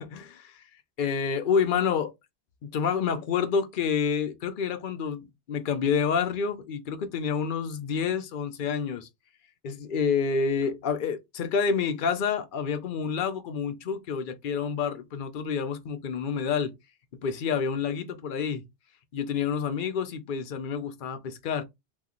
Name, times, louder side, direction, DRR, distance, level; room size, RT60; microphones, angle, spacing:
voice 1, 0.0-0.6 1.0-2.1 2.6-9.1 9.6-16.7 17.2-18.6 19.1-21.6, left 6 dB, 55° left, 0.7 m, -28 dB
2.9 x 2.3 x 3.7 m
omnidirectional pair, 1.1 m